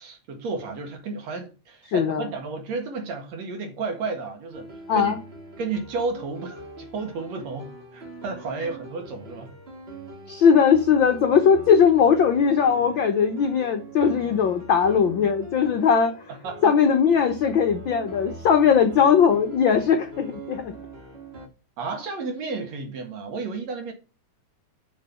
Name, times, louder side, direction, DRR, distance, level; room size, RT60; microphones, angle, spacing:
voice 1, 0.0-5.1 5.6-9.5 16.3-16.8 21.8-23.9, right 4 dB, 65° right, 2.9 m, -32 dB
voice 2, 1.9-2.3 4.9-5.2 10.3-16.1 16.6-20.7, left 7 dB, 70° left, 1.1 m, -19 dB
sound 1, 4.5-21.5, right 2 dB, 30° right, 1.3 m, -42 dB
6.5 x 6.2 x 7.0 m
omnidirectional pair, 3.3 m